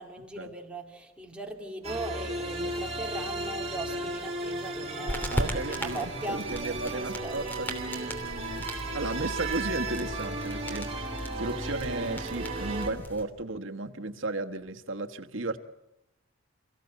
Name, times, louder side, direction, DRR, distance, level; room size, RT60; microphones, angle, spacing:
voice 1, 0.0-7.6, right 1 dB, 5° right, 0 dB, 2.6 m, -39 dB
sound 1, 1.8-12.9, right 2 dB, 30° right, 3.4 m, -35 dB
sound 2, 5.1-13.2, equal, 10° left, 3.0 m, -38 dB
voice 2, 5.3-8.7 8.9-10.9 11.4-15.6, right 2 dB, 75° right, 6 dB, 1.4 m, -34 dB
28.5 x 16.0 x 8.1 m, 0.94 s
head